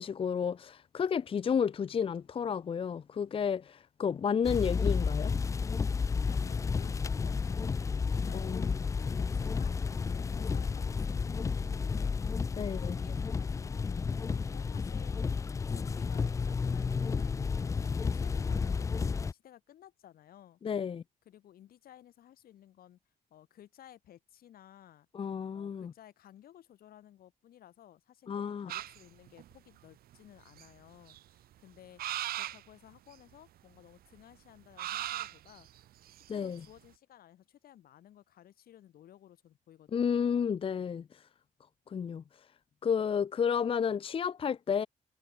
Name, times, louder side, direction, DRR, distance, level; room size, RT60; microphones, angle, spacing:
voice 1, 0.0-5.3 8.3-8.7 12.6-12.9 20.6-21.0 25.1-25.9 28.3-28.7 36.3-36.6 39.9-41.2 41.9-42.2 42.8-44.9, left 7 dB, 35° left, 0.8 m, -31 dB
sound 1, 4.4-19.3, left 5 dB, 20° left, 0.3 m, -32 dB
voice 2, 6.3-9.7 10.1-12.1 12.6-15.2 15.7-20.6 21.3-23.0 23.3-25.1 25.5-32.0 32.3-35.7 36.1-40.4, left 11 dB, 80° left, 7.9 m, -56 dB
sound 2, 28.7-29.6 30.1-30.2 30.5-31.2 32.0-32.6 33.1-33.2 34.8-36.7, right 13 dB, 90° right, 1.1 m, -38 dB
cardioid pair, 145°, 15 cm